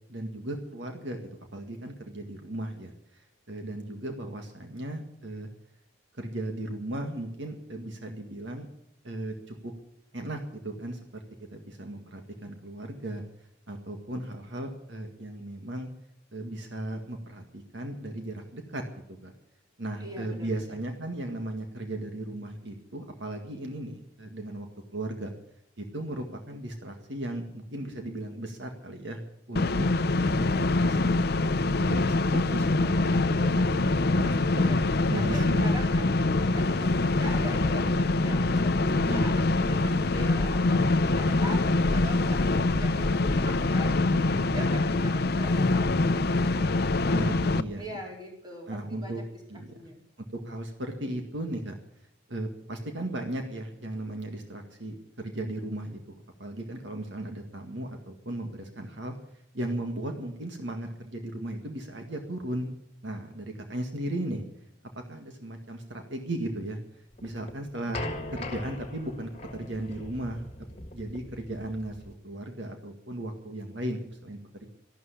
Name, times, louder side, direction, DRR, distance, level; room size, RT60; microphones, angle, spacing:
voice 1, 0.1-1.2 1.5-5.5 6.1-8.7 9.0-9.7 10.1-11.0 11.4-13.2 13.7-15.9 16.3-19.3 19.8-24.7 24.9-25.3 25.8-29.2 29.5-29.9 30.2-34.7 35.1-35.7 36.0-36.1 39.1-39.4 47.1-47.8 48.7-49.2 49.5-49.8 50.4-51.8 52.3-59.1 59.5-62.7 63.0-64.4 65.0-70.5 70.9-74.7, right 1 dB, 70° right, 4 dB, 1.9 m, -36 dB
voice 2, 20.0-20.8 34.2-34.8 35.1-47.2 47.8-49.2 49.7-50.0, right 1 dB, 20° right, 0 dB, 4.1 m, -42 dB
sound 1, 29.6-47.6, left 2 dB, 55° left, 0.6 m, -24 dB
sound 2, 67.2-72.1, left 2 dB, 35° left, 1.6 m, -40 dB
12.5 x 12.0 x 8.3 m, 0.77 s
head